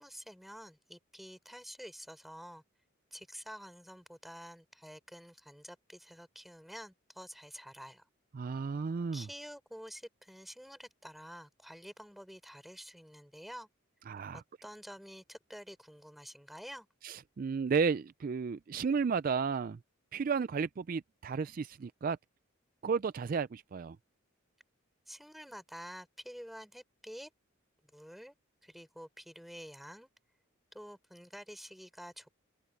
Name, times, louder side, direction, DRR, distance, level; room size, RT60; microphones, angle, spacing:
voice 1, 0.0-2.6 3.1-8.0 9.1-13.7 14.6-16.9 25.1-27.3 27.9-28.3 28.6-30.1 30.7-32.3, equal, ahead, 3.8 m, -49 dB
voice 2, 8.3-9.3 14.1-14.4 17.0-19.8 20.1-22.2 22.8-24.0, right 5 dB, 45° right, 0.3 m, -33 dB
open air
head